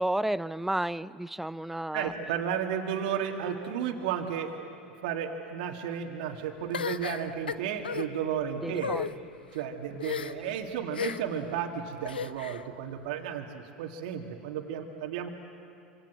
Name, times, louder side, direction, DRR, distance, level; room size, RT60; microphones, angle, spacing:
voice 1, 0.0-2.1 8.6-9.0, right 1 dB, 5° right, 18 dB, 0.6 m, -31 dB
voice 2, 1.9-4.5 5.0-8.9 9.5-15.3, right 8 dB, 65° right, 2 dB, 2.2 m, -33 dB
sound 1, 6.7-8.1 8.7-9.1 10.0-10.5 10.9-11.4 12.0-12.6, left 7 dB, 85° left, 0.7 m, -33 dB
26.0 x 25.5 x 7.7 m, 2.6 s
hypercardioid pair, 85°, 5 cm